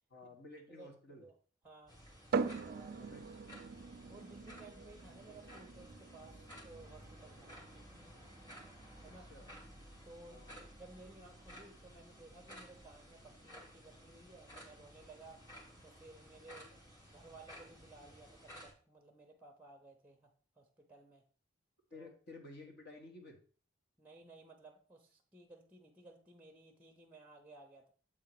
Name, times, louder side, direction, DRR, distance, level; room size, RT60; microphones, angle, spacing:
voice 1, 0.1-1.3 3.0-3.2 9.0-9.5 10.3-10.6 16.7-16.8 21.9-23.4, left 2 dB, 55° left, 1 dB, 1.4 m, -53 dB
voice 2, 0.7-1.3 1.6-2.0 2.6-3.0 4.1-7.8 9.0-9.3 10.0-15.4 15.8-16.7 17.1-20.3 20.6-21.2 21.9-22.1 24.0-27.9, right 2 dB, 5° right, 3 dB, 0.6 m, -57 dB
sound 1, 1.9-18.7, equal, 20° left, 1.8 m, -55 dB
sound 2, 2.3-15.8, right 5 dB, 50° right, 0.4 m, -45 dB
7.6 x 3.7 x 4.7 m, 0.42 s
head